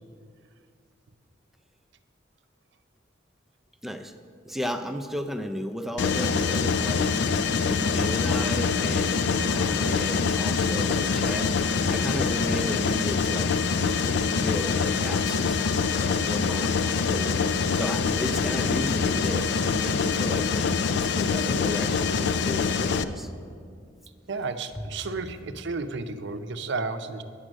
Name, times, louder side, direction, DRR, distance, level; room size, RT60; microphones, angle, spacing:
voice 1, 3.8-4.1 4.5-7.1 7.7-13.5 14.3-23.3 24.8-24.9, equal, ahead, 5 dB, 0.5 m, -35 dB
Mechanisms, 6.0-23.0, left 5 dB, 60° left, 0.4 m, -25 dB
voice 2, 24.3-27.2, right 3 dB, 65° right, 9 dB, 0.6 m, -32 dB
9.9 x 7.5 x 6.3 m, 2.2 s
head